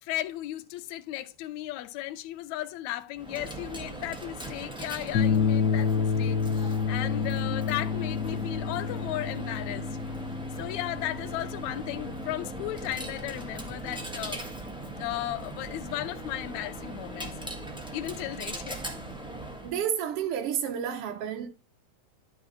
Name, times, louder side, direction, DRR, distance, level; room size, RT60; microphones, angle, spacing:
voice 1, 0.0-9.9 10.6-14.4 15.0-17.3 17.9-18.8, left 15 dB, 75° left, 2.0 m, -35 dB
Coin (dropping), 3.1-19.8, right 1 dB, 5° right, 0.4 m, -39 dB
sound 1, 5.1-13.6, left 6 dB, 50° left, 1.3 m, -30 dB
voice 2, 19.6-21.5, right 9 dB, 65° right, 1.5 m, -30 dB
12.0 x 4.9 x 4.2 m
omnidirectional pair, 3.6 m